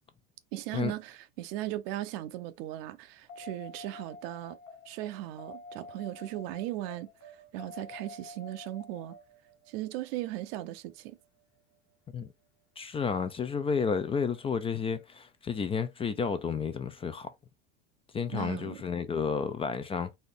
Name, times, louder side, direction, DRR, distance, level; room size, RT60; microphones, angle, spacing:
voice 1, 0.5-4.6 4.9-9.2 9.7-11.2 18.3-18.8, right 14 dB, 65° right, 0.7 m, -37 dB
sound 1, 3.3-11.7 14.4-14.5, left 2 dB, 45° left, 1.4 m, -49 dB
voice 2, 12.8-17.3 18.1-20.2, left 6 dB, 20° left, 0.4 m, -31 dB
4.2 x 2.6 x 3.3 m
supercardioid pair, 110°, 31 cm